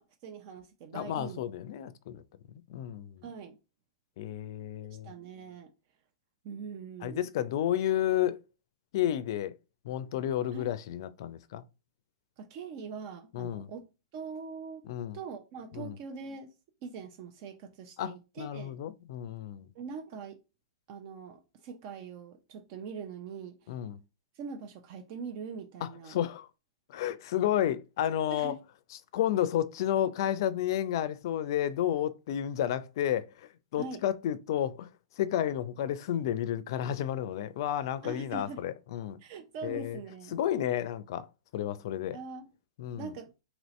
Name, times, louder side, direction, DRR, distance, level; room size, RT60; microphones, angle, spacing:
voice 1, 0.0-1.4 3.2-3.6 5.0-5.7 6.4-7.2 10.5-10.7 12.4-14.9 15.1-16.5 16.8-18.8 19.7-20.4 20.9-23.8 24.3-26.2 28.3-28.6 33.8-34.0 38.0-38.6 39.2-40.4 42.1-42.5 43.0-43.3, right 5 dB, 45° right, 0.6 m, -42 dB
voice 2, 0.9-2.2 2.7-3.2 4.2-5.1 7.0-8.4 8.9-9.5 9.8-11.6 13.3-13.7 14.9-15.2 15.7-15.9 18.0-19.7 23.7-24.0 25.8-26.5 26.9-28.6 29.1-34.9 35.2-39.2 39.6-40.0 40.3-41.3 41.5-42.2 42.8-43.1, left 11 dB, 55° left, 0.4 m, -31 dB
2.9 x 2.7 x 3.1 m
hypercardioid pair, 125°, 3 cm